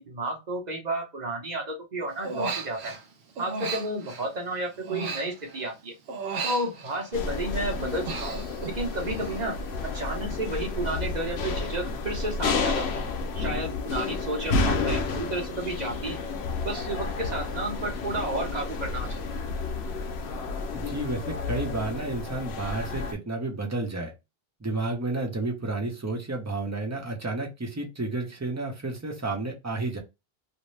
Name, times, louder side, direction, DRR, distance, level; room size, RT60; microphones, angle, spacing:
voice 1, 0.0-2.9 3.4-5.9 6.4-9.6 9.8-13.0 13.3-16.2 16.6-19.2, right 1 dB, 45° right, 1 dB, 0.9 m, -32 dB
Human voice, 2.2-3.0 3.4-5.8 6.1-7.3 7.7-9.5 9.8-10.1, right 4 dB, 85° right, 0.9 m, -36 dB
sound 1, 7.1-23.1, left 4 dB, 85° left, 0.8 m, -31 dB
voice 2, 20.7-24.1 24.6-30.0, right 2 dB, 20° right, 1 dB, 0.7 m, -31 dB
2.6 x 2.1 x 3.1 m, 0.23 s
omnidirectional pair, 1.1 m